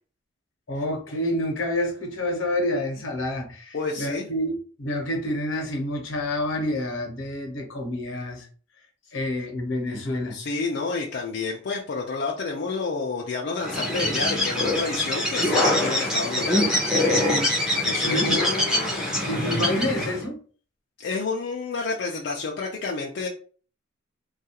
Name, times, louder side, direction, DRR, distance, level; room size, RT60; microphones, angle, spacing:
voice 1, 0.7-8.5 9.1-10.4 18.0-18.4 19.2-20.4, left 1 dB, 80° left, 2 dB, 0.8 m, -28 dB
voice 2, 3.7-4.3 10.3-16.8 17.8-19.4 21.0-23.3, left 4 dB, 55° left, -1 dB, 0.4 m, -30 dB
Bird, 13.6-20.2, left 1 dB, 5° right, 0.6 m, -24 dB
2.3 x 2.3 x 2.8 m, 0.41 s
head